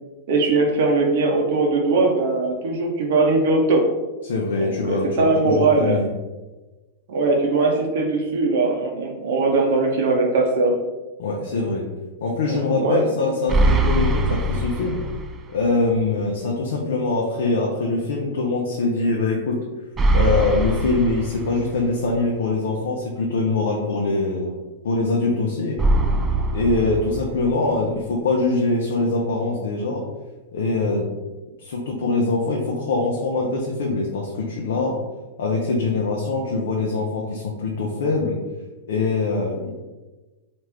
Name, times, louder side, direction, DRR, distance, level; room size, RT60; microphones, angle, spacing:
voice 1, 0.3-3.9 4.6-6.0 7.1-10.8 12.8-13.0, right 3 dB, 65° right, 1 dB, 0.7 m, -20 dB
voice 2, 4.2-6.1 11.2-11.8 12.2-15.0 15.5-19.6 20.1-24.6 24.8-25.8 26.5-30.0 30.5-31.1 31.6-34.9 35.4-38.3 38.9-39.7, left 3 dB, 80° left, -2 dB, 0.6 m, -23 dB
sound 1, 13.5-15.5 15.8-15.9 20.0-22.0 25.8-27.8, right 1 dB, 15° right, 0.3 m, -22 dB
3.0 x 2.4 x 3.3 m, 1.2 s
hypercardioid pair, 140°, 0 cm